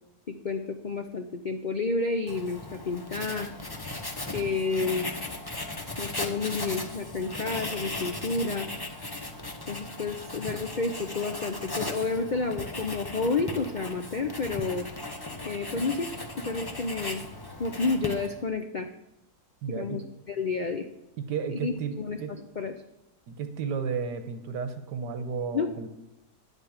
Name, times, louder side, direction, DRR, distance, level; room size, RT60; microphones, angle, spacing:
voice 1, 0.3-3.5 4.3-5.1 6.0-8.7 9.7-14.9 15.4-16.1 16.4-17.2 17.6-18.9 19.8-20.0 20.3-20.8 21.5-22.7 25.5-25.9, left 4 dB, 85° left, 6 dB, 0.4 m, -30 dB
Writing, 2.3-18.5, left 2 dB, 20° left, 0.7 m, -37 dB
voice 2, 19.6-20.0 21.2-22.3 23.3-25.9, right 6 dB, 85° right, 9 dB, 1.6 m, -33 dB
10.5 x 8.1 x 7.3 m, 0.91 s
omnidirectional pair, 1.8 m